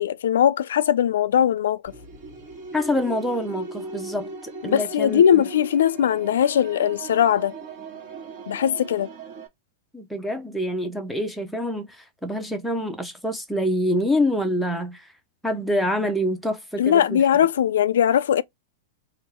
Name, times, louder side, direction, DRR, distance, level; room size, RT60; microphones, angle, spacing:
voice 1, 0.0-1.9 4.6-7.6 8.5-9.1 16.8-18.4, left 9 dB, 80° left, 0.4 m, -20 dB
sound 1, 1.8-9.5, right 3 dB, 35° right, 1.4 m, -38 dB
voice 2, 2.7-5.4 9.9-15.1 15.4-17.2, left 1 dB, ahead, 0.6 m, -26 dB
3.5 x 2.4 x 4.5 m
supercardioid pair, 180°, 0 cm